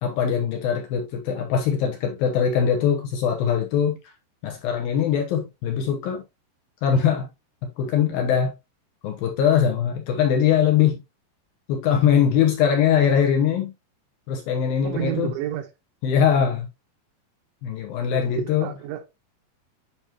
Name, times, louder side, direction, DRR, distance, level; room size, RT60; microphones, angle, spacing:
voice 1, 0.0-4.0 4.4-6.2 6.8-7.3 7.6-8.5 9.0-11.0 11.7-13.7 14.3-15.3 16.0-16.7 17.6-18.7, left 8 dB, 70° left, 2.3 m, -22 dB
voice 2, 14.8-15.7 18.4-19.1, right 11 dB, 85° right, 3.5 m, -30 dB
9.0 x 5.3 x 3.0 m
omnidirectional pair, 5.2 m